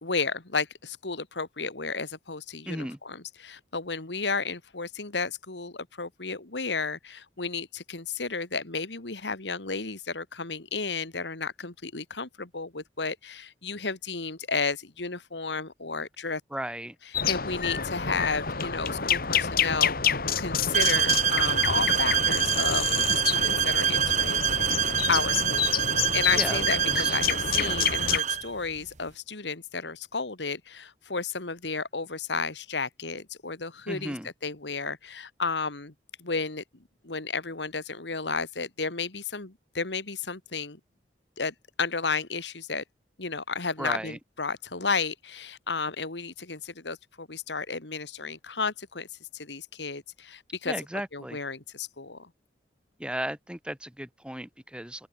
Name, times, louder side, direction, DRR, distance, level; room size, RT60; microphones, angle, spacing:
voice 1, 0.0-16.4 17.2-25.6 26.1-34.2 34.4-35.9 36.2-36.6 37.0-40.8 41.4-42.8 43.2-49.1 49.3-50.7 51.1-52.3, left 4 dB, 80° left, 2.2 m, -32 dB
voice 2, 2.7-3.0 16.5-17.0 26.3-27.1 27.6-27.8 33.9-34.3 43.8-44.2 50.7-51.4 53.0-55.1, right 1 dB, 5° right, 2.1 m, -35 dB
sound 1, 17.1-28.2, left 7 dB, 55° left, 3.5 m, -28 dB
sound 2, 20.7-28.5, right 8 dB, 45° right, 1.3 m, -26 dB
open air
head